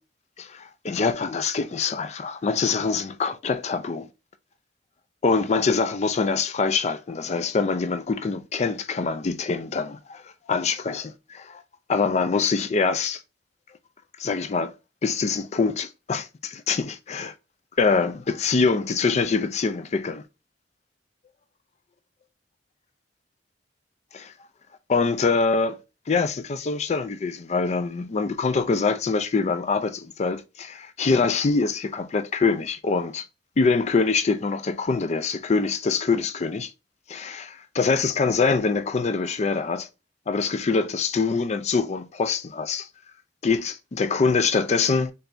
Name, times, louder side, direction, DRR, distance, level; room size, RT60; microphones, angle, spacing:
voice 1, 0.4-4.1 5.2-10.2 10.5-11.6 11.9-13.2 14.2-14.7 15.0-17.3 17.8-20.2 24.1-24.3 24.9-25.8 26.1-33.3 33.6-36.7 37.1-39.9 40.3-42.9 43.4-45.1, left 4 dB, 40° left, 0.4 m, -24 dB
4.2 x 3.3 x 2.6 m
head